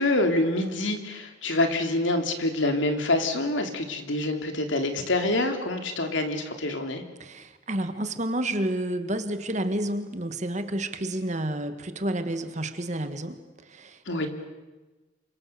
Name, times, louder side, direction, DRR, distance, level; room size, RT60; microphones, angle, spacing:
voice 1, 0.0-7.0 14.1-14.3, left 2 dB, 80° left, 5 dB, 3.2 m, -26 dB
voice 2, 7.2-13.4 13.7-14.0, right 1 dB, 40° right, 9 dB, 1.8 m, -30 dB
28.0 x 25.5 x 7.0 m, 1.2 s
head